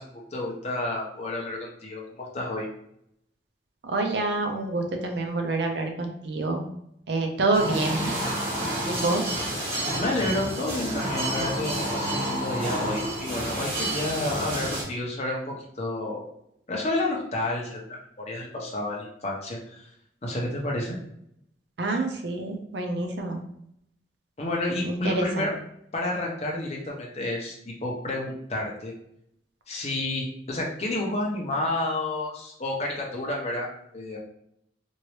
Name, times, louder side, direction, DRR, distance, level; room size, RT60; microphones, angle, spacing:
voice 1, 0.0-2.7 10.0-16.2 16.7-19.9 20.2-21.0 24.4-25.5 25.9-28.9 29.7-33.7 33.9-34.2, left 2 dB, 40° left, -2 dB, 0.8 m, -30 dB
voice 2, 3.8-6.6 7.1-8.1 8.9-9.4 21.8-23.4 24.8-25.5, right 2 dB, 75° right, 4 dB, 0.6 m, -27 dB
sound 1, 7.5-14.8, right 1 dB, 35° right, 1.5 m, -29 dB
3.0 x 2.7 x 3.1 m, 0.73 s
head